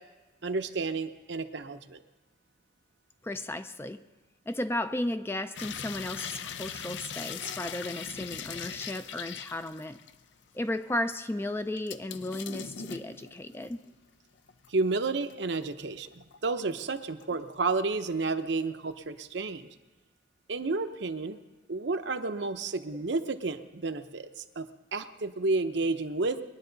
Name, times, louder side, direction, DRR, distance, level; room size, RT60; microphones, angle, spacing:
voice 1, 0.4-2.0 14.7-19.7 20.5-21.4 21.7-26.4, right 3 dB, 70° right, 9 dB, 0.7 m, -31 dB
voice 2, 3.2-4.0 4.5-10.0 10.5-13.9, left 1 dB, 10° left, 10 dB, 0.4 m, -34 dB
sound 1, 5.6-10.3 10.7-10.8 11.8-13.9 14.4-15.7 16.1-17.3 17.7-18.2 18.5-18.6, left 7 dB, 75° left, 0.5 m, -41 dB
21.5 x 10.5 x 4.0 m, 1.2 s
head